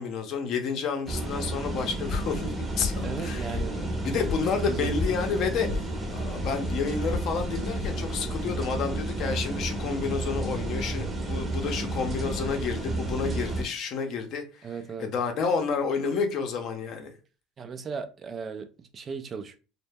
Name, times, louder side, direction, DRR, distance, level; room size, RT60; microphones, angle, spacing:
voice 1, 0.0-3.5 4.0-5.8 6.1-14.7 15.0-17.1, left 5 dB, 55° left, 0.6 m, -30 dB
sound 1, 1.1-13.6, right 2 dB, 20° right, 0.7 m, -31 dB
sound 2, 2.0-8.4, left 4 dB, 25° left, 0.8 m, -36 dB
voice 2, 3.0-3.8 4.7-4.9 14.6-15.1 17.6-19.6, right 6 dB, 35° right, 0.3 m, -36 dB
2.1 x 2.1 x 3.2 m
supercardioid pair, 95°, 0 cm